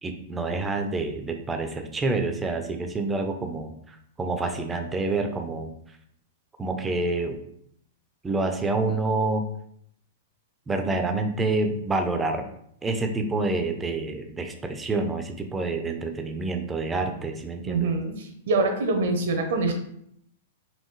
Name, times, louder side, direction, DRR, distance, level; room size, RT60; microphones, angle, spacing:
voice 1, 0.0-5.7 6.6-7.4 8.2-9.5 10.7-12.5 12.8-17.9, right 3 dB, 15° right, 5 dB, 0.6 m, -27 dB
voice 2, 17.6-19.7, right 3 dB, 60° right, 5 dB, 0.8 m, -25 dB
4.4 x 3.0 x 3.1 m, 0.70 s
figure-of-eight pair, 100°, 0 cm